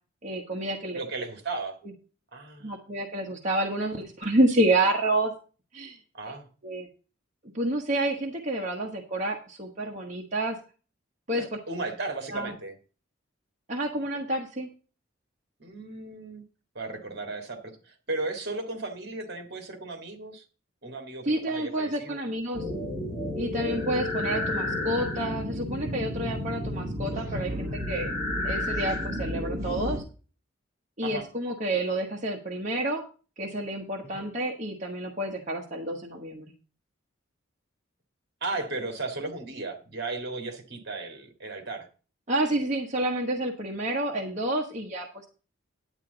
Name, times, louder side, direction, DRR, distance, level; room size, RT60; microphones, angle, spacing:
voice 1, 0.2-1.0 2.6-5.3 5.7-6.0 6.6-6.9 7.5-10.6 11.3-11.4 12.3-12.5 13.7-14.7 21.2-22.6 23.3-28.1 28.4-30.0 31.0-33.0 33.4-36.5 42.3-45.3, right 1 dB, 35° right, -1 dB, 1.3 m, -29 dB
voice 2, 0.9-1.8 2.3-2.9 6.1-6.5 11.4-12.8 15.6-16.4 16.8-20.5 20.8-22.2 23.6-24.2 31.0-31.3 34.0-34.3 38.4-41.9, right 3 dB, 55° right, 6 dB, 1.9 m, -35 dB
sound 1, 22.5-30.0, left 1 dB, 15° right, 2.4 m, -31 dB
10.5 x 8.9 x 4.0 m, 0.36 s
head